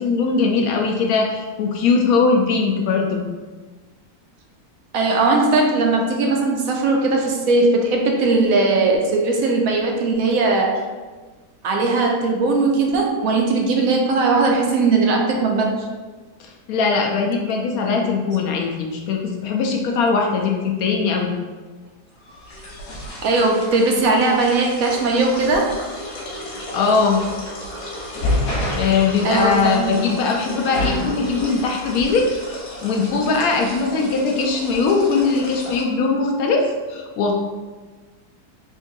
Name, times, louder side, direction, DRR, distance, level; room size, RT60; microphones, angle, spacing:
voice 1, 0.0-3.2 16.4-21.3 26.5-27.2 28.7-32.3 32.8-37.3, left 4 dB, 75° left, 1 dB, 1.0 m, -20 dB
voice 2, 4.9-10.7 11.6-15.7 23.2-25.7 28.5-28.6 29.2-30.0, right 3 dB, 70° right, 0 dB, 0.9 m, -19 dB
Piss flow, 22.3-35.8, left 1 dB, 90° left, 1.6 m, -30 dB
3.8 x 3.6 x 2.6 m, 1.3 s
omnidirectional pair, 1.7 m